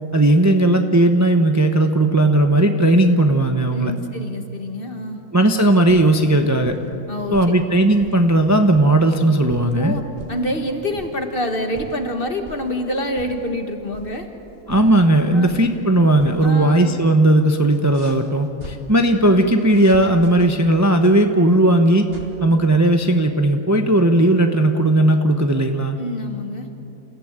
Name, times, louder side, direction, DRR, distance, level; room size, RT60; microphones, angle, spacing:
voice 1, 0.1-3.9 5.3-6.7 7.3-9.9 14.7-22.1 22.4-26.0, right 1 dB, 15° right, 5 dB, 0.9 m, -16 dB
voice 2, 3.7-5.2 7.1-7.4 9.7-10.0 10.3-14.3 15.3-15.6 16.4-16.9 26.0-26.7, left 1 dB, 40° left, 5 dB, 1.8 m, -26 dB
sound 1, 5.9-6.3 6.6-6.9 7.3-8.2 8.6-9.8 10.2-10.5 10.9-11.2 11.5-12.1 12.5-12.7 13.1-14.4 14.7-15.9 16.2-16.5 16.7-16.8 17.7-18.7 19.6-20.5 21.5-22.3, right 1 dB, 40° right, 2.7 m, -40 dB
28.5 x 15.5 x 8.9 m, 2.8 s
omnidirectional pair, 1.5 m